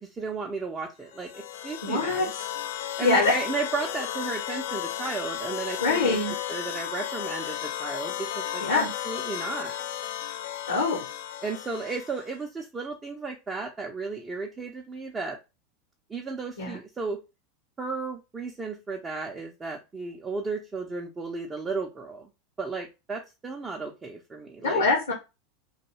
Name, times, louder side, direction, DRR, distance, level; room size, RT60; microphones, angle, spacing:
voice 1, 0.0-2.3 3.0-6.2 6.5-9.8 11.4-15.4 16.1-17.2 17.8-22.3 22.6-24.8, right 4 dB, 20° right, -1 dB, 0.6 m, -34 dB
sound 1, 1.1-12.4, left 11 dB, 60° left, 0.3 m, -34 dB
voice 2, 1.8-2.5 3.0-3.3 5.8-6.3 8.6-8.9 10.7-11.0 16.6-16.8 24.6-25.1, left 3 dB, 80° left, 0 dB, 0.8 m, -24 dB
2.6 x 2.3 x 2.9 m, 0.26 s
figure-of-eight pair, 85°, 0 cm